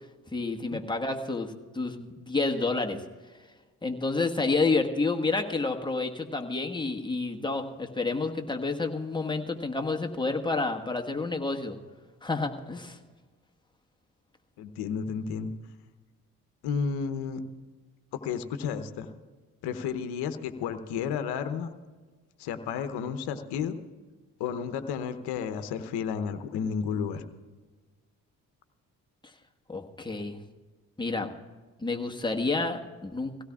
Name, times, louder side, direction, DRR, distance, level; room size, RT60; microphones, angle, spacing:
voice 1, 0.3-3.0 3.8-11.8 12.2-13.0 29.7-30.4 31.0-31.3 31.8-33.4, left 3 dB, 10° left, 3 dB, 1.4 m, -29 dB
voice 2, 14.6-15.5 16.6-17.4 18.1-19.1 19.6-21.7 22.4-23.8 24.4-27.2, left 6 dB, 75° left, 10 dB, 0.9 m, -32 dB
22.5 x 16.5 x 2.4 m, 1.3 s
hypercardioid pair, 50°, 41 cm